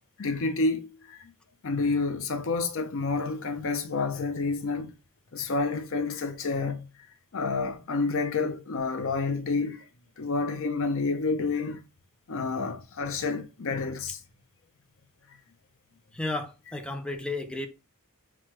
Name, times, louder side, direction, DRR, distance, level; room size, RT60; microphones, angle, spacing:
voice 1, 0.2-1.3 1.6-4.9 5.3-6.8 7.3-9.9 10.2-11.8 12.3-14.2, left 3 dB, 60° left, 0.6 m, -29 dB
voice 2, 16.1-17.7, left 2 dB, 5° left, 0.5 m, -33 dB
6.0 x 2.4 x 3.0 m
head